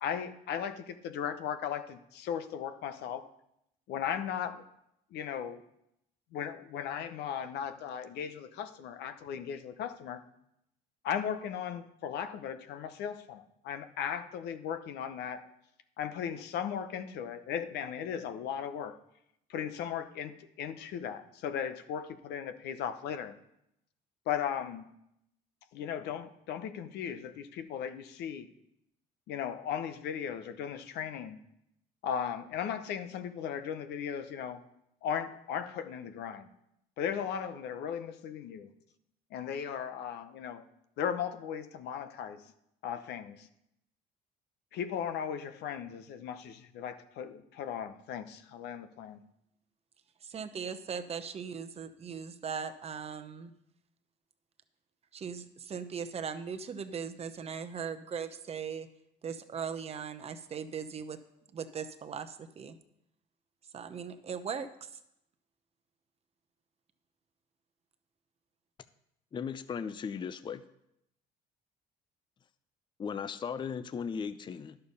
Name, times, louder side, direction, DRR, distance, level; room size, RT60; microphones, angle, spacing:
voice 1, 0.0-3.3 3.9-4.6 5.1-5.6 6.3-10.2 11.0-15.4 16.0-19.0 19.5-23.3 24.3-24.9 25.7-28.5 29.3-31.4 32.0-34.6 35.0-36.5 37.0-38.7 39.3-40.6 41.0-42.4 42.8-43.5 44.7-49.2, left 8 dB, 80° left, 10 dB, 0.9 m, -37 dB
voice 2, 50.2-53.5 55.1-58.9 59.2-61.2 61.5-62.8 63.7-64.9, right 6 dB, 35° right, 9 dB, 0.8 m, -39 dB
voice 3, 69.3-70.7 73.0-74.8, left 6 dB, 30° left, 13 dB, 0.5 m, -37 dB
11.0 x 6.8 x 5.4 m, 0.79 s
cardioid pair, 110°, 17 cm